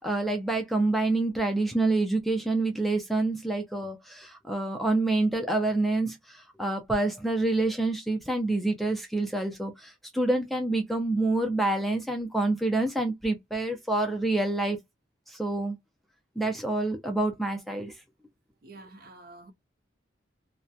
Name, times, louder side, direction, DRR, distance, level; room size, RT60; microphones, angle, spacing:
voice 1, 0.0-14.8 15.3-15.8 16.4-18.0, right 2 dB, ahead, 0.4 m, -27 dB
voice 2, 18.6-19.5, right 2 dB, 50° right, 0.6 m, -48 dB
2.7 x 2.1 x 2.2 m
head